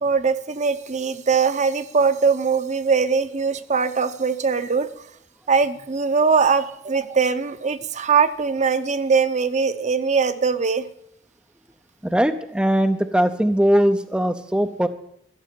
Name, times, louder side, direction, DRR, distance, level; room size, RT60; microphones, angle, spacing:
voice 1, 0.0-4.9 5.5-10.8, right 5 dB, 40° right, 11 dB, 0.8 m, -21 dB
voice 2, 12.0-14.9, equal, 5° right, 8 dB, 0.5 m, -20 dB
14.5 x 7.6 x 9.3 m, 0.73 s
head